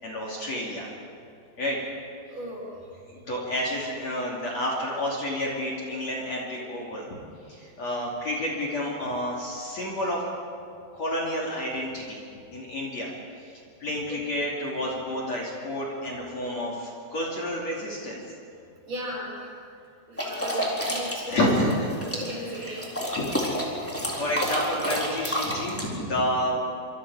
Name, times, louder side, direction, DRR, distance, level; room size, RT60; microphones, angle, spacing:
voice 1, 0.0-0.9 1.6-1.8 3.1-7.2 7.5-10.2 10.9-12.2 12.5-13.1 13.4-13.5 13.8-18.2 21.3-21.9 23.1-26.6, left 1 dB, 40° left, -3 dB, 3.8 m, -30 dB
voice 2, 2.3-2.7 14.1-14.2 18.8-19.6 20.1-21.4 22.1-22.9, equal, 50° right, -4 dB, 8.1 m, -36 dB
sound 1, 20.2-25.8, equal, 5° left, 3.3 m, -30 dB
27.0 x 26.5 x 5.0 m, 2.5 s
omnidirectional pair, 4.9 m